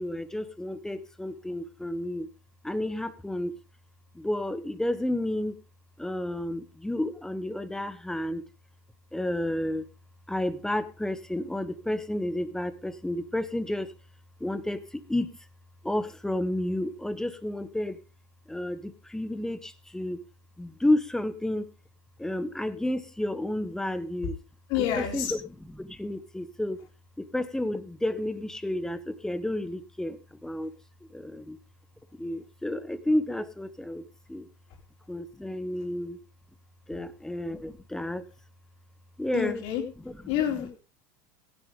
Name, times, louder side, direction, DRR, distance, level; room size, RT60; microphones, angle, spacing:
voice 1, 0.0-2.3 2.6-3.6 4.1-5.6 6.0-8.4 9.1-9.9 10.3-13.9 14.4-15.5 15.8-18.0 18.5-20.2 20.6-21.7 22.2-24.4 24.7-25.4 25.6-26.8 27.2-31.6 32.2-34.5 35.1-36.2 36.9-38.3 39.2-39.6 40.0-40.2, left 1 dB, 5° left, 13 dB, 1.2 m, -31 dB
voice 2, 24.7-25.3 39.3-39.8 40.3-40.7, left 10 dB, 60° left, 3 dB, 3.9 m, -28 dB
16.0 x 10.5 x 3.7 m, 0.32 s
supercardioid pair, 105°, 11 cm